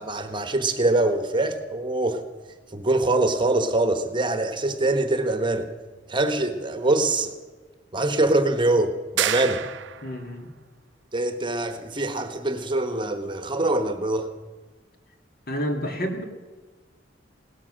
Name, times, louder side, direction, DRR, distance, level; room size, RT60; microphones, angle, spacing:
voice 1, 0.0-2.2 2.7-5.7 6.1-7.4 7.9-9.6 11.1-14.3, right 2 dB, 25° right, 9 dB, 1.1 m, -24 dB
sound 1, 9.2-10.3, right 11 dB, 85° right, 0.5 m, -28 dB
voice 2, 10.0-10.5 15.5-16.2, equal, 55° left, 4 dB, 2.2 m, -29 dB
17.5 x 13.0 x 6.3 m, 1.3 s
head